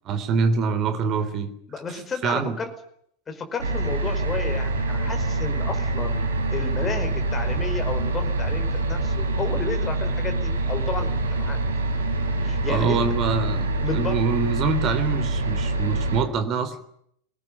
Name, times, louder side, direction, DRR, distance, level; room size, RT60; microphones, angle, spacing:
voice 1, 0.1-1.5 2.2-2.6 12.7-13.7 13.9-16.8, right 5 dB, 35° right, 11 dB, 3.6 m, -24 dB
voice 2, 1.7-2.7 3.3-6.2 6.5-11.6 12.4-13.0 13.8-14.1, left 4 dB, 20° left, 6 dB, 5.1 m, -32 dB
sound 1, 3.6-16.2, right 2 dB, 65° right, 4.1 m, -25 dB
22.5 x 19.5 x 9.9 m, 0.69 s
figure-of-eight pair, 90°, 0 cm